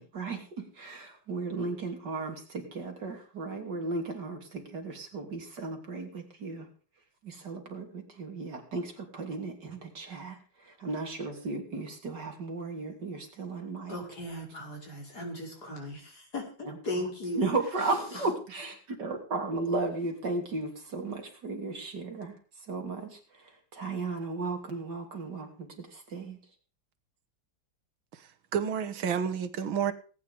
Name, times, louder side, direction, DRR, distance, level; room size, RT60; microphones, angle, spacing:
voice 1, 0.0-6.7 7.2-14.0 16.7-16.8 17.4-26.4, right 3 dB, 60° right, 3 dB, 3.5 m, -35 dB
voice 2, 13.9-17.5 17.8-18.3, left 1 dB, 50° left, 1 dB, 5.6 m, -37 dB
voice 3, 28.1-29.9, right 7 dB, 85° right, 11 dB, 2.0 m, -30 dB
19.0 x 9.9 x 5.2 m, 0.39 s
omnidirectional pair, 2.1 m